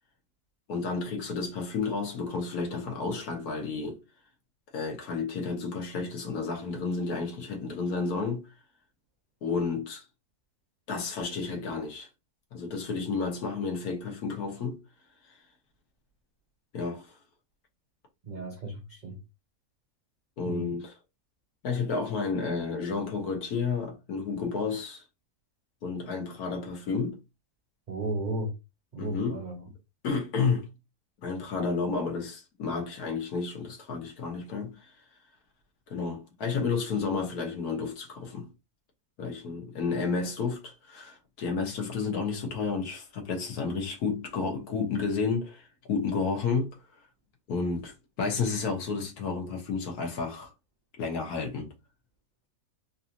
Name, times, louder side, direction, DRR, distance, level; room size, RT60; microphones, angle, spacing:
voice 1, 0.7-4.0 4.7-8.5 9.4-10.0 10.9-12.1 12.5-14.8 16.7-17.1 20.4-20.9 21.6-25.0 25.8-27.2 29.0-29.4 30.0-30.7 31.2-34.8 35.9-38.5 39.2-46.8 47.5-50.5 51.0-51.7, left 4 dB, 70° left, 1.6 m, -31 dB
voice 2, 18.2-19.2 20.5-20.8 27.9-28.5 28.9-29.6, right 1 dB, 60° right, 0.4 m, -34 dB
4.0 x 2.6 x 2.8 m
omnidirectional pair, 1.7 m